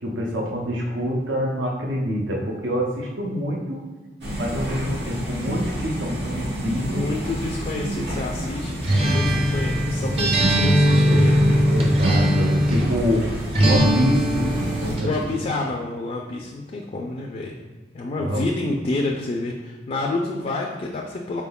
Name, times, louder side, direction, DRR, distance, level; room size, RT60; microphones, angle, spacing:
voice 1, 0.0-3.8 4.4-7.1 11.7-13.3 13.6-14.2 14.8-15.1 18.2-18.4, equal, 90° right, -1 dB, 0.6 m, -25 dB
sound 1, 4.2-15.0, equal, 65° right, 1.0 m, -29 dB
voice 2, 6.9-11.4 15.0-17.6 17.9-21.4, left 2 dB, 35° left, 0 dB, 0.3 m, -29 dB
Acoustic guitar, 8.8-12.9 13.5-15.1, equal, 35° right, 0.6 m, -20 dB
4.3 x 3.6 x 2.3 m, 1.3 s
head